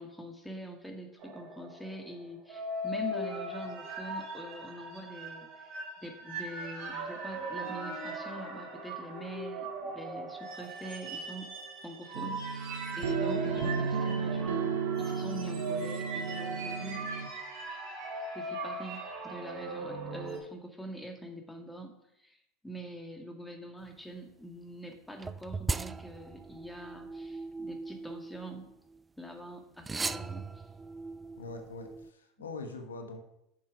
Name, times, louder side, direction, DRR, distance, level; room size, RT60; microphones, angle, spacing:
voice 1, 0.0-5.7 6.0-11.5 11.8-17.1 18.3-21.9 22.2-22.4 22.6-28.7 29.2-30.5 32.4-32.5, right 1 dB, 5° left, 4 dB, 1.8 m, -44 dB
sound 1, 1.2-20.4, right 2 dB, 55° right, 3.2 m, -39 dB
sound 2, 12.1-17.3, right 5 dB, 75° right, 0.7 m, -33 dB
sound 3, 25.2-29.0 29.8-32.1, right 4 dB, 20° right, 0.4 m, -39 dB
voice 2, 31.4-33.2, left 3 dB, 85° left, 5 dB, 1.1 m, -42 dB
7.3 x 6.8 x 5.0 m, 0.79 s
hypercardioid pair, 80°, 0 cm